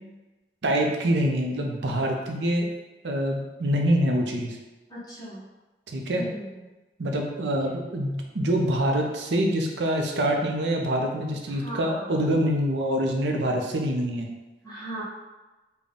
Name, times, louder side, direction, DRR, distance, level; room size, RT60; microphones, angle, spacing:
voice 1, 0.6-2.6 3.0-4.6 5.9-6.2 7.0-14.3, right 1 dB, 80° right, 1 dB, 0.6 m, -25 dB
voice 2, 4.9-5.4 6.1-6.6 11.5-12.2 14.6-15.0, right 1 dB, 20° left, -8 dB, 0.9 m, -38 dB
3.9 x 2.3 x 3.5 m, 1.1 s
head